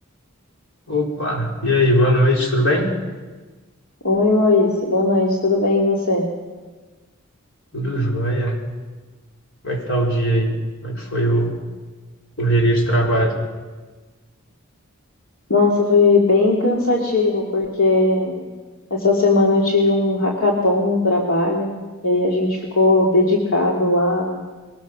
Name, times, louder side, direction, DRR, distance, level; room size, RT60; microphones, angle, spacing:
voice 1, 0.9-2.9 7.7-8.6 9.6-11.6 12.4-13.3, equal, 60° left, 0 dB, 4.3 m, -19 dB
voice 2, 4.0-6.3 15.5-18.5 18.9-21.7 22.0-24.4, left 2 dB, 80° left, -2 dB, 2.4 m, -18 dB
22.5 x 19.5 x 6.2 m, 1.3 s
head